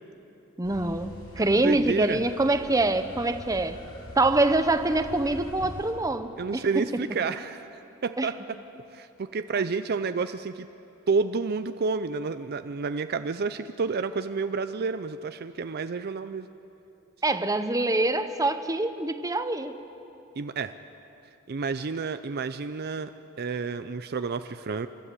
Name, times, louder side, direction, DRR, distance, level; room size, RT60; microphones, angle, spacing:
sound 1, 0.6-5.9, equal, 90° left, 5.2 m, -44 dB
voice 1, 0.6-3.8 4.2-6.6 8.2-8.3 17.2-19.8, right 2 dB, 15° right, 9 dB, 0.8 m, -25 dB
voice 2, 1.4-2.2 6.4-8.6 8.9-10.7 11.1-16.5 20.4-20.7 21.5-23.1 23.4-24.9, right 4 dB, 45° right, 10 dB, 0.5 m, -30 dB
28.5 x 13.0 x 8.3 m, 3.0 s
head